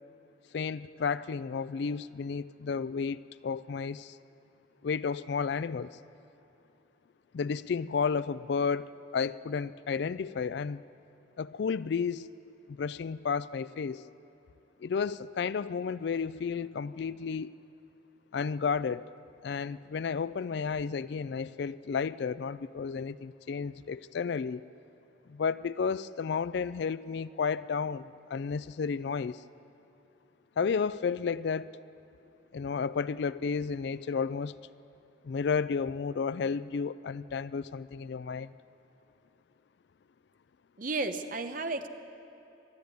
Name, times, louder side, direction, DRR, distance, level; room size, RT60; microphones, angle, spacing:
voice 1, 0.5-4.2 4.8-6.0 7.3-10.8 11.4-12.3 12.7-14.0 14.8-17.5 18.3-19.1 19.4-24.6 25.3-29.4 30.6-31.7 32.5-34.6 35.2-38.5, left 5 dB, 60° left, 16 dB, 0.3 m, -32 dB
voice 2, 40.8-41.9, right 3 dB, 45° right, 7 dB, 0.9 m, -33 dB
21.0 x 13.0 x 9.6 m, 3.0 s
head